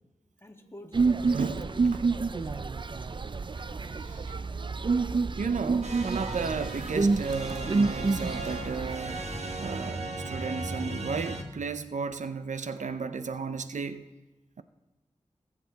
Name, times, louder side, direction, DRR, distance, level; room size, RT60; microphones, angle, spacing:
voice 1, 0.4-2.7, equal, 20° left, 1.8 m, -48 dB
sound 1, 0.9-9.0, right 4 dB, 40° right, 0.4 m, -28 dB
voice 2, 1.3-1.7 3.6-3.7 4.0-4.3 5.4-9.3 9.6-14.1, right 5 dB, 85° right, 0.6 m, -34 dB
sound 2, 5.8-11.4, right 2 dB, 65° right, 1.4 m, -36 dB
19.0 x 8.1 x 4.0 m
cardioid pair, 40°, 12 cm